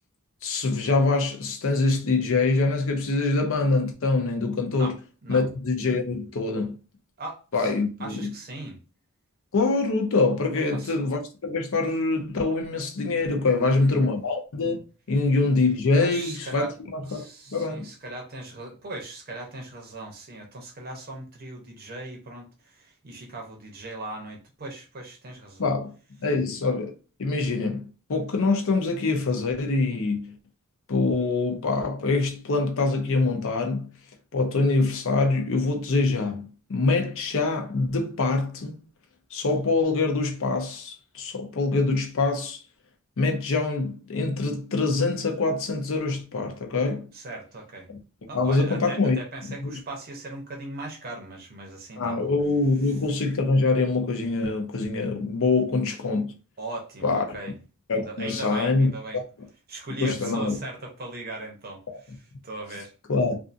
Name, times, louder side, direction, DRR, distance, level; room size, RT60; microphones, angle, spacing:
voice 1, 0.4-4.9 5.3-6.8 7.5-8.3 9.5-14.8 15.1-17.2 17.5-17.9 25.6-25.9 26.2-26.9 27.2-30.4 30.9-33.9 34.3-38.8 39.3-42.6 43.2-47.1 48.3-49.2 49.4-49.8 52.0-56.3 57.0-57.4 57.9-59.2 60.0-60.6 61.9-62.0 63.1-63.4, left 3 dB, 65° left, 0.6 m, -24 dB
voice 2, 7.2-7.7 8.0-8.8 10.7-10.9 13.4-14.1 16.0-16.7 17.1-25.7 47.1-47.9 48.3-52.3 56.6-57.5 57.9-59.2 59.7-62.2 62.4-62.9, right 2 dB, 45° right, 0.7 m, -38 dB
2.6 x 2.4 x 2.5 m
head